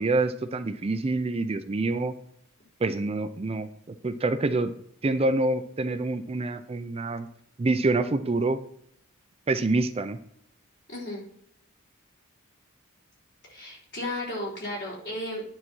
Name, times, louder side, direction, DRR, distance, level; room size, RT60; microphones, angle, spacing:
voice 1, 0.0-2.1 2.8-3.7 4.0-4.7 5.0-7.3 7.6-8.6 9.5-10.2, right 2 dB, 30° right, 10 dB, 0.4 m, -26 dB
voice 2, 10.9-11.2 13.5-15.4, left 1 dB, 55° left, -4 dB, 3.7 m, -34 dB
9.8 x 4.1 x 6.1 m, 0.69 s
head